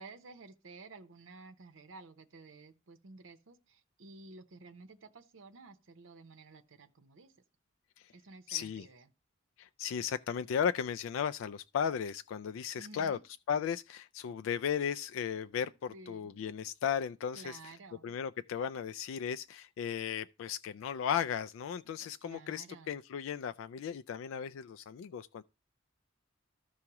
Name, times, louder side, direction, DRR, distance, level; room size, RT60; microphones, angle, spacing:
voice 1, 0.0-7.3 8.1-9.0 12.8-13.2 15.6-16.4 17.3-18.2 22.2-23.0, right 3 dB, 80° right, 0.7 m, -53 dB
voice 2, 8.5-8.9 9.6-13.2 13.5-17.7 18.0-25.4, left 8 dB, 85° left, 0.3 m, -35 dB
14.0 x 4.7 x 2.9 m
head